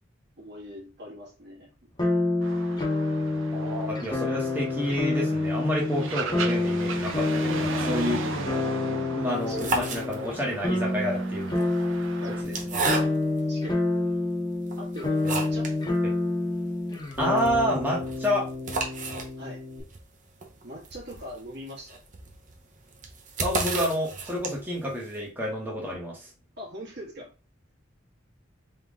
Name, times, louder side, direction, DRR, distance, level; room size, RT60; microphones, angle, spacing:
voice 1, 0.4-1.9 7.6-8.2 8.9-9.0 9.4-9.7 11.1-11.2 11.9-13.2 13.5-13.8 14.8-15.7 19.4-19.6 20.6-22.0 26.6-27.3, equal, 60° right, -3 dB, 1.7 m, -42 dB
sound 1, 2.0-19.8, left 2 dB, 25° left, 0.9 m, -28 dB
sound 2, 2.4-12.4, right 4 dB, 80° right, 0.7 m, -37 dB
voice 2, 3.5-8.2 9.1-11.7 12.3-12.9 15.2-15.4 16.0-16.1 17.2-18.4 23.4-26.3, equal, 10° right, -4 dB, 1.0 m, -29 dB
sound 3, 9.3-10.5 11.4-13.5 14.1-14.2 14.7-15.8 16.1-16.2 16.5-16.6 16.9-24.8, right 3 dB, 40° right, 0.7 m, -33 dB
3.6 x 2.9 x 3.6 m, 0.33 s
head